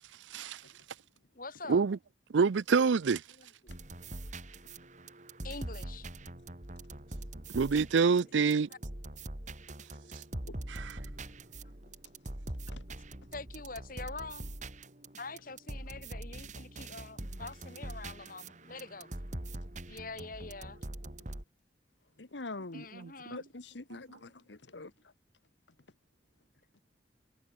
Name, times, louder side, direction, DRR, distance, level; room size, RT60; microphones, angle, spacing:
voice 1, 0.3-0.6 1.7-2.0 2.3-3.2 7.5-8.7 10.7-11.0 23.0-23.1, right 5 dB, 85° right, 0.5 m, -26 dB
voice 2, 1.4-1.8 3.3-3.7 5.4-6.1 8.1-8.2 8.7-8.8 13.3-14.5 15.2-19.1 19.9-20.8 22.7-23.4 24.2-24.5, left 3 dB, 50° left, 5.4 m, -45 dB
sound 1, 3.7-21.4, right 1 dB, 40° right, 2.6 m, -43 dB
voice 3, 22.2-22.9 23.3-24.9, left 2 dB, 80° left, 1.4 m, -44 dB
head